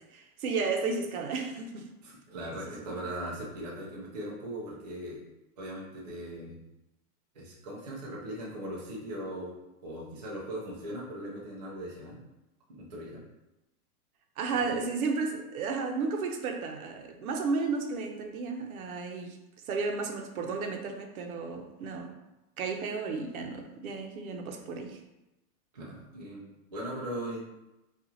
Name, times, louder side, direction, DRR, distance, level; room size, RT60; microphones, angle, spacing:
voice 1, 0.1-1.9 2.6-3.0 14.4-19.4 19.7-22.1 22.6-25.0, right 4 dB, 65° right, 4 dB, 0.7 m, -33 dB
voice 2, 2.0-5.2 5.6-6.6 7.3-9.5 9.8-12.2 12.7-13.2 14.5-14.8 25.7-26.4 26.7-27.4, right 1 dB, 30° right, -5 dB, 0.3 m, -39 dB
5.5 x 2.4 x 2.7 m, 0.97 s
supercardioid pair, 175°, 46 cm